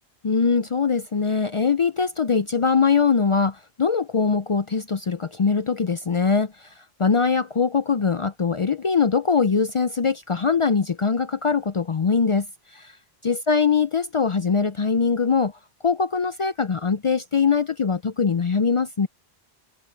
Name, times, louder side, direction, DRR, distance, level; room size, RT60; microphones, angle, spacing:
voice 1, 0.2-6.7 7.0-12.5 12.7-12.9 13.2-15.5 15.8-19.1, left 5 dB, 45° left, 0.4 m, -22 dB
omnidirectional pair, 1.1 m